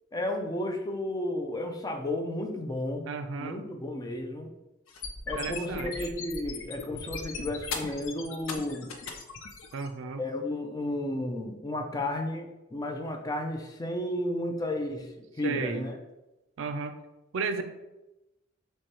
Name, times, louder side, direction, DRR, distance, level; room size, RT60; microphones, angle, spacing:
voice 1, 0.1-3.1 3.4-4.5 5.3-8.9 10.2-15.9, left 1 dB, 20° left, 4 dB, 0.4 m, -33 dB
voice 2, 3.0-3.6 5.3-6.1 9.7-10.2 15.4-15.9 16.6-16.9 17.3-17.6, right 4 dB, 70° right, 8 dB, 0.4 m, -33 dB
sound 1, 4.9-9.9, left 5 dB, 75° left, 0.5 m, -38 dB
6.1 x 2.3 x 2.9 m, 0.99 s
head